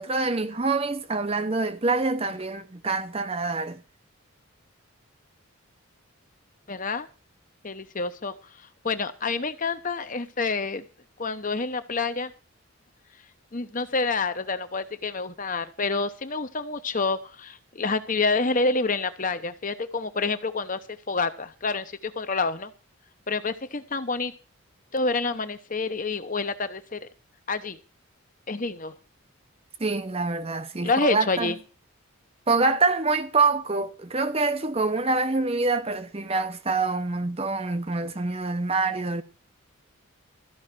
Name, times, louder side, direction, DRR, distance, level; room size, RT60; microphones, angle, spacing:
voice 1, 0.0-3.8 29.8-31.5 32.5-39.2, right 3 dB, 25° right, 0.7 m, -26 dB
voice 2, 6.7-7.1 7.6-8.3 8.8-10.8 11.2-12.3 13.5-22.7 23.3-24.3 24.9-27.1 27.5-27.8 28.5-28.9 30.8-31.6, left 3 dB, 35° left, 0.9 m, -28 dB
13.5 x 5.6 x 9.0 m
head